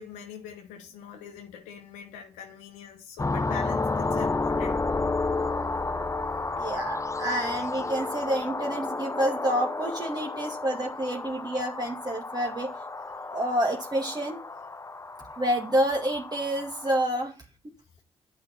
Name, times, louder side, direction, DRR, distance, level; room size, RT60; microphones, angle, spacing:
voice 1, 0.0-4.8 6.6-6.7, left 8 dB, 85° left, 1.2 m, -43 dB
sound 1, 3.2-17.0, left 3 dB, 20° left, 0.7 m, -31 dB
voice 2, 6.6-12.7 13.3-14.4 15.4-17.3, right 1 dB, 30° right, 2.0 m, -28 dB
9.6 x 5.6 x 5.8 m
hypercardioid pair, 40°, 14 cm